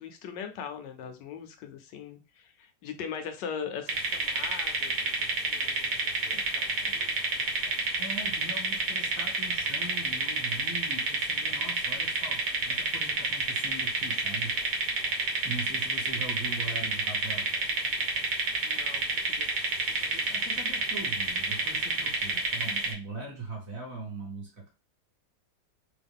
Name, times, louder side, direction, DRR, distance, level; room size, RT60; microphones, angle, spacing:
voice 1, 0.0-7.5 18.6-19.7 20.0-20.4, left 7 dB, 75° left, 7 dB, 1.3 m, -41 dB
sound 1, 3.9-22.9, right 3 dB, 65° right, 1.5 m, -29 dB
voice 2, 8.0-14.6 15.4-17.5 20.1-24.7, right 3 dB, 40° right, -2 dB, 1.5 m, -41 dB
3.7 x 2.3 x 3.6 m, 0.29 s
omnidirectional pair, 2.0 m